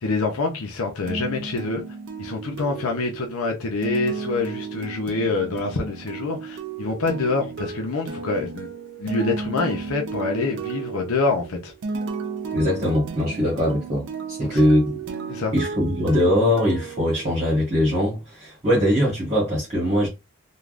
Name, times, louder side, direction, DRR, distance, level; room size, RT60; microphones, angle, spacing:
voice 1, 0.0-1.8 2.2-8.7 9.0-11.7 14.4-14.7 15.3-15.5, left 3 dB, 80° left, 0.6 m, -26 dB
sound 1, 1.1-17.8, right 5 dB, 55° right, 0.4 m, -34 dB
voice 2, 12.5-15.0 15.5-20.1, equal, 30° right, 1.2 m, -21 dB
3.3 x 2.3 x 2.4 m
head